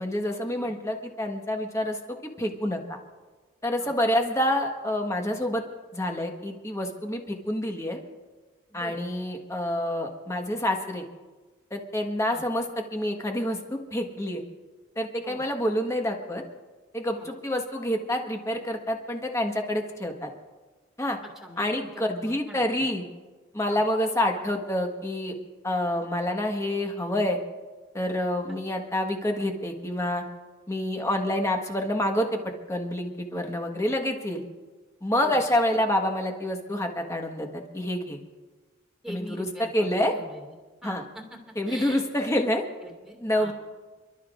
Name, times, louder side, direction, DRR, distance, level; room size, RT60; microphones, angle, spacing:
voice 1, 0.0-3.0 3.6-5.6 5.9-8.0 8.7-11.0 11.7-12.7 12.9-14.4 14.9-16.4 16.9-20.3 21.0-21.2 21.6-23.0 23.5-25.3 25.6-27.4 27.9-30.2 30.7-32.4 32.7-34.4 35.0-38.2 39.1-39.4 39.7-40.1 40.8-41.0 41.6-42.6 43.2-43.5, left 1 dB, 15° left, 3 dB, 1.4 m, -27 dB
voice 2, 21.4-22.8 23.7-23.8 35.2-35.4 39.0-40.5 40.8-41.4 41.7-42.0 42.8-43.5, equal, 5° right, -1 dB, 2.1 m, -43 dB
29.0 x 12.5 x 2.5 m, 1.3 s
head